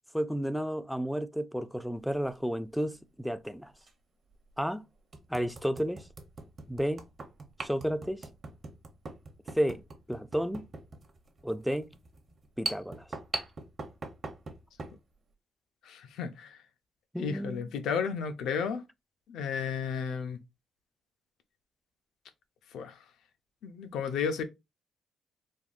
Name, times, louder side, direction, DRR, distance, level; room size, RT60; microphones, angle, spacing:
voice 1, 0.1-3.7 4.6-4.9 5.3-6.1 6.7-7.1 7.6-8.2 9.5-10.7 11.4-12.0 12.6-13.1 17.1-17.7, equal, ahead, 0.3 m, -32 dB
sound 1, 2.1-2.4 3.8-3.9 4.5-4.6 5.1-15.0, right 3 dB, 40° right, 0.6 m, -41 dB
voice 2, 15.9-16.6 17.2-18.8 19.3-20.4 22.7-23.0 23.6-24.4, left 6 dB, 80° left, 0.4 m, -33 dB
3.4 x 2.2 x 2.4 m
cardioid pair, 90°, 0 cm